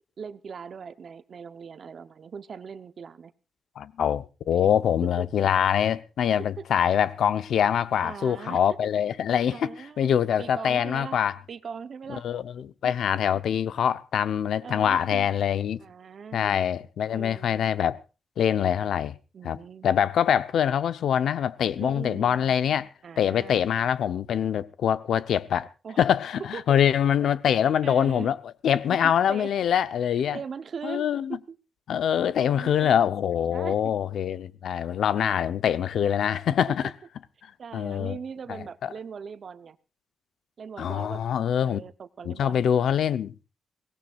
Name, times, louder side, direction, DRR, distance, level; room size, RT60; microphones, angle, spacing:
voice 1, 0.2-3.3 5.0-5.2 6.6-6.7 8.0-8.6 9.5-10.1 10.4-11.2 11.5-12.2 14.6-15.3 15.8-16.6 17.1-17.6 19.3-19.9 21.8-22.5 23.0-23.6 25.8-26.0 26.5-26.8 27.8-28.3 28.9-29.5 30.3-31.6 32.4-33.0 33.5-33.8 35.1-35.5 36.7-36.9 37.6-39.8 40.6-41.2 41.6-42.7, right 6 dB, 45° right, 0.9 m, -40 dB
voice 2, 3.8-9.7 10.0-11.4 12.2-15.8 16.3-18.0 18.4-19.1 19.4-22.9 23.2-25.7 26.0-28.4 28.6-30.4 30.8-31.4 31.9-36.9 37.4-38.2 38.5-38.9 40.8-41.8 42.2-43.4, left 9 dB, 70° left, 0.9 m, -24 dB
23.5 x 18.0 x 2.5 m
wide cardioid pair, 170°, 0 cm